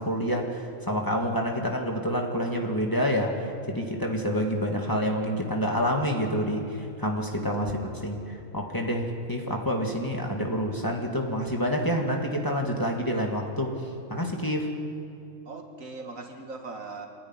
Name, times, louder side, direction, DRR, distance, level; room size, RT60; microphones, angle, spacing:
voice 1, 0.0-3.3 3.7-13.8 14.1-14.7, equal, 15° left, 1 dB, 2.0 m, -28 dB
voice 2, 7.6-8.0 15.5-17.1, right 3 dB, 85° right, 3 dB, 2.3 m, -40 dB
26.5 x 10.0 x 9.8 m, 2.6 s
omnidirectional pair, 1.4 m